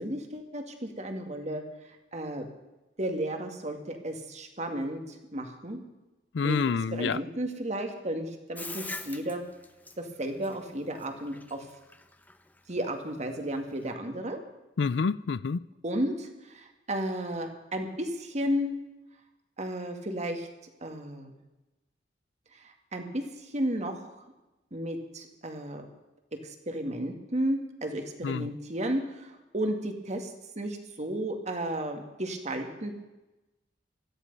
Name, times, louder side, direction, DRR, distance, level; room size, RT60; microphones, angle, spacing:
voice 1, 0.0-1.6 2.1-2.5 3.0-5.8 6.4-6.6 6.9-9.4 10.0-11.6 12.7-14.4 15.8-18.7 19.6-20.5 20.8-21.3 22.5-24.1 24.7-25.8 26.4-30.3 30.6-32.9, right 1 dB, 40° right, 5 dB, 2.1 m, -33 dB
voice 2, 6.3-7.2 14.8-15.6 28.2-28.6, left 5 dB, 75° left, 19 dB, 0.4 m, -28 dB
Bathtub (filling or washing), 8.6-13.9, left 2 dB, 10° left, 0.9 m, -43 dB
17.0 x 13.5 x 5.5 m, 1.0 s
head